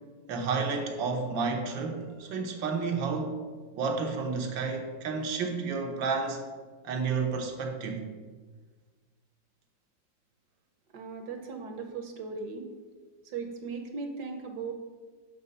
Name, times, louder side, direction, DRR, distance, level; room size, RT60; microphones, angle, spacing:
voice 1, 0.3-3.4 3.8-6.4 6.8-8.1, right 4 dB, 90° right, 4 dB, 1.7 m, -31 dB
voice 2, 10.9-12.7 13.2-14.7, right 4 dB, 70° right, 5 dB, 1.2 m, -38 dB
6.5 x 5.4 x 5.3 m, 1.4 s
omnidirectional pair, 2.0 m